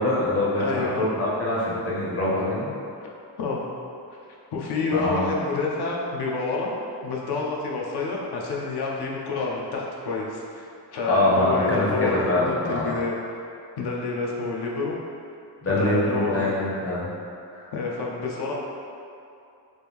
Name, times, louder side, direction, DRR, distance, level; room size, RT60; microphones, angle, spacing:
voice 1, 0.0-2.7 4.9-5.3 11.1-13.0 15.6-17.1 17.5-17.7, left 1 dB, 35° left, -6 dB, 0.7 m, -24 dB
voice 2, 0.6-1.0 3.4-3.7 4.5-6.7 7.0-13.2 13.8-15.0 15.8-16.6 17.7-18.5, left 3 dB, 70° left, -3 dB, 0.6 m, -28 dB
3.2 x 2.5 x 3.4 m, 2.5 s
wide cardioid pair, 170°, 42 cm